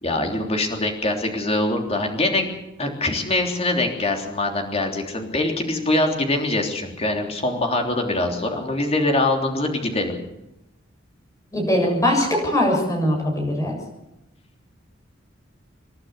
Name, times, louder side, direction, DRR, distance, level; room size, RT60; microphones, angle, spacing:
voice 1, 0.0-2.5 2.8-10.2, left 2 dB, 30° left, 3 dB, 3.4 m, -23 dB
voice 2, 11.5-13.7, left 1 dB, 15° left, -1 dB, 7.3 m, -21 dB
28.5 x 11.5 x 8.2 m, 0.89 s
head